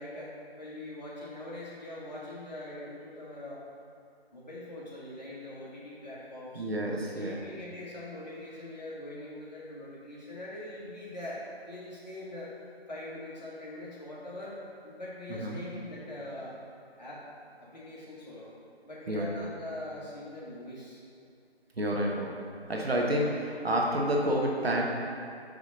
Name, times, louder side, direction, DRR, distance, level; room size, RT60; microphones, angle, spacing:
voice 1, 0.0-3.6 4.3-6.7 7.1-11.4 11.7-12.5 12.9-14.6 14.8-16.6 17.0-17.2 17.6-18.6 18.8-21.0, left 1 dB, 40° left, -7 dB, 1.5 m, -42 dB
voice 2, 6.5-7.4 15.3-15.6 19.1-19.3 21.8-22.3 22.7-24.8, right 1 dB, 70° right, -1 dB, 1.1 m, -29 dB
5.1 x 5.0 x 3.8 m, 2.4 s
figure-of-eight pair, 160°, 32 cm